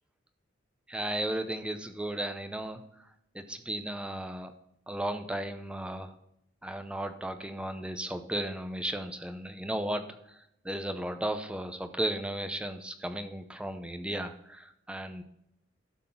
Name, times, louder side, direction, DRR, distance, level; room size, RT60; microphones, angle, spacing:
voice 1, 0.9-2.8 3.3-4.5 4.9-6.1 6.6-10.1 10.6-15.2, right 1 dB, 5° right, 8 dB, 0.6 m, -35 dB
12.5 x 4.2 x 5.6 m, 0.77 s
head